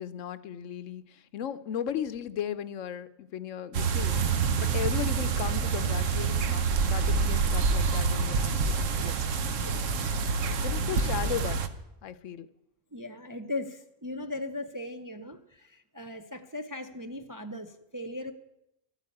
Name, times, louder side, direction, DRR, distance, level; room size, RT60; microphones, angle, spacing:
voice 1, 0.0-4.2 4.6-9.2 10.6-11.6 12.0-12.5, left 9 dB, 75° left, 14 dB, 1.0 m, -36 dB
sound 1, 3.7-11.7, right 5 dB, 75° right, 1.3 m, -27 dB
voice 2, 12.9-18.3, left 2 dB, 25° right, 5 dB, 0.5 m, -38 dB
13.0 x 9.1 x 8.5 m, 0.85 s
omnidirectional pair, 1.3 m